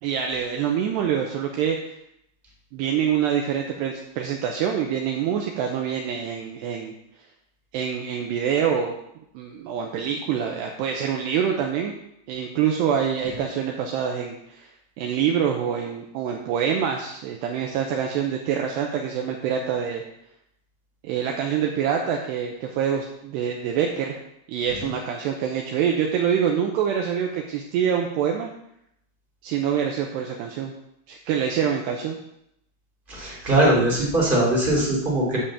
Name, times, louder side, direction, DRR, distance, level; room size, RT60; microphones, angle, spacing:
voice 1, 0.0-1.9 2.7-6.9 7.7-8.9 9.3-11.9 12.3-14.7 15.0-20.0 21.0-24.2 24.5-28.5 29.4-30.7 31.1-32.2, right 8 dB, 80° right, 1 dB, 2.5 m, -25 dB
voice 2, 33.1-35.4, right 1 dB, 20° right, -4 dB, 1.6 m, -21 dB
9.9 x 5.5 x 7.3 m, 0.78 s
omnidirectional pair, 5.8 m